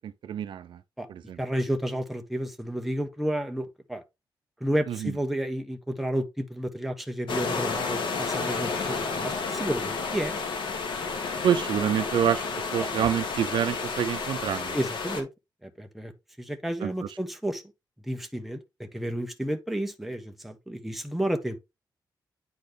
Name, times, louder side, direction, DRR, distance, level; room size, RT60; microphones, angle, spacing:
voice 1, 0.3-0.7 1.3-1.4 11.4-12.4 12.7-14.7 16.8-16.9, right 9 dB, 85° right, 0.5 m, -26 dB
voice 2, 1.4-4.0 4.6-10.4 12.8-12.9 14.7-15.3 15.6-16.1 16.4-17.6 18.1-21.6, right 1 dB, ahead, 0.9 m, -31 dB
sound 1, 7.3-15.2, left 4 dB, 90° left, 1.7 m, -31 dB
9.3 x 4.1 x 3.4 m
wide cardioid pair, 170°, 8 cm